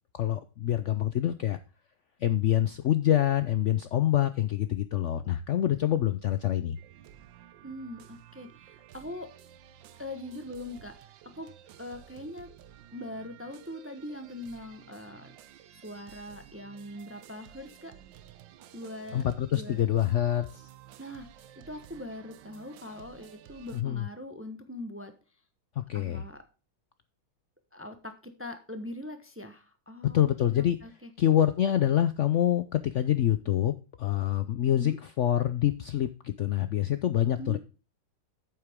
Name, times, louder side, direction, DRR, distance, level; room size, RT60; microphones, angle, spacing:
voice 1, 0.1-1.6 2.2-6.8 19.1-20.7 23.7-24.1 25.8-26.2 30.1-30.8 31.2-37.6, left 11 dB, 85° left, 11 dB, 0.6 m, -26 dB
sound 1, 6.8-23.8, right 11 dB, 85° right, 1.5 m, -53 dB
voice 2, 7.6-9.3 10.0-11.5 11.8-12.5 12.9-15.3 15.8-17.9 18.7-19.2 19.5-19.8 21.0-21.3 21.7-25.1 25.9-26.4 27.7-31.1 34.8-35.0 37.4-37.6, left 1 dB, 10° right, 8 dB, 0.6 m, -42 dB
9.1 x 8.0 x 3.6 m, 0.33 s
omnidirectional pair, 2.0 m